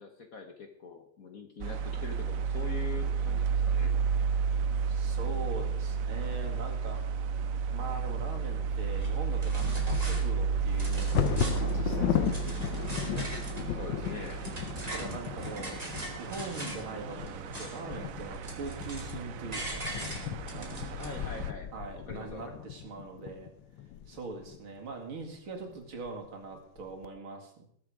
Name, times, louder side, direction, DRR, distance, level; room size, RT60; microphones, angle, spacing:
voice 1, 0.0-3.9 13.7-14.4 21.0-21.7 22.1-22.6, left 5 dB, 50° left, 6 dB, 1.3 m, -43 dB
sound 1, 1.6-21.5, right 6 dB, 85° right, 0.7 m, -32 dB
voice 2, 4.9-7.0 7.7-12.9 14.9-15.8 16.2-19.9 20.5-21.0 21.7-23.5 24.1-27.7, right 3 dB, 65° right, 2 dB, 3.0 m, -42 dB
Bird vocalization bird call bird song / Wind / Thunder, 8.7-24.6 25.2-25.3 25.7-26.1 26.5-27.1, left 11 dB, 70° left, 1.3 m, -36 dB
sound 2, 9.0-9.1 9.4-10.2 10.6-11.7 12.1-13.7 14.0-16.8 17.2-17.9 18.2-19.2 19.5-21.1, equal, 15° right, 2.7 m, -40 dB
20.0 x 7.3 x 4.9 m, 0.66 s
omnidirectional pair, 2.4 m